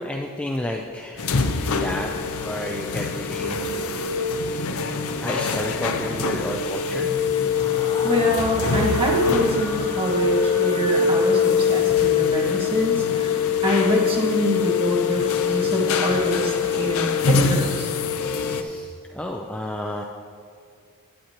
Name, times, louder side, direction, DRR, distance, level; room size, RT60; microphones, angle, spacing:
voice 1, 0.0-1.4 1.8-4.0 5.2-7.1 18.3-20.0, left 1 dB, 5° left, 1 dB, 0.3 m, -31 dB
the sound of working injection molding machine - rear, 1.2-18.6, left 5 dB, 65° left, 0.5 m, -23 dB
Screaming, 7.4-12.2, left 1 dB, 50° left, 2.4 m, -38 dB
voice 2, 7.8-17.9, equal, 25° right, -3 dB, 1.5 m, -25 dB
11.5 x 9.0 x 2.9 m, 2.3 s
head